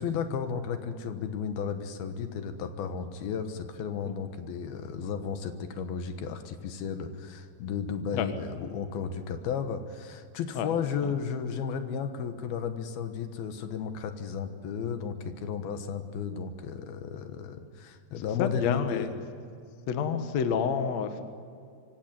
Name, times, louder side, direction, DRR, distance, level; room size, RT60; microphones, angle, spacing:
voice 1, 0.0-19.2, left 6 dB, 75° left, 8 dB, 3.1 m, -34 dB
voice 2, 18.1-19.1 19.9-21.2, left 7 dB, 55° left, 8 dB, 2.1 m, -29 dB
24.5 x 17.0 x 9.3 m, 2.4 s
omnidirectional pair, 4.5 m